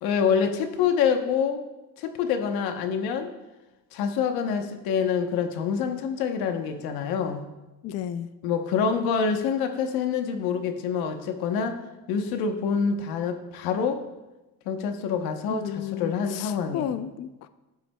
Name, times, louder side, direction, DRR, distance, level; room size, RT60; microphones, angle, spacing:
voice 1, 0.0-1.6 2.0-3.3 3.9-7.5 8.4-11.8 12.1-14.0 14.7-16.9, left 6 dB, 85° left, 7 dB, 1.0 m, -26 dB
voice 2, 7.8-8.3 15.5-17.5, left 10 dB, 45° left, 12 dB, 0.4 m, -33 dB
15.5 x 7.1 x 2.3 m, 1.1 s
cardioid pair, 125°, 36 cm